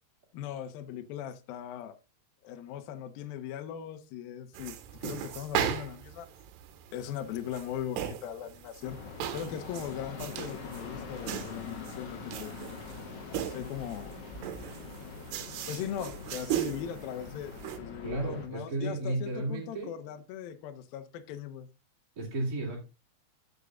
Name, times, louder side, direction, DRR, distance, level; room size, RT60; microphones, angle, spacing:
voice 1, 0.3-2.0 2.4-4.8 5.0-6.3 6.9-9.0 9.3-12.5 13.3-14.1 15.7-21.7, left 9 dB, 70° left, 8 dB, 2.4 m, -39 dB
sound 1, 4.6-17.8, right 11 dB, 80° right, 3.0 m, -38 dB
sound 2, 8.8-18.5, left 4 dB, 45° left, 2.3 m, -43 dB
voice 2, 18.0-19.9 22.2-22.8, right 2 dB, 25° right, -3 dB, 2.4 m, -33 dB
14.5 x 6.6 x 2.4 m, 0.28 s
omnidirectional pair, 4.9 m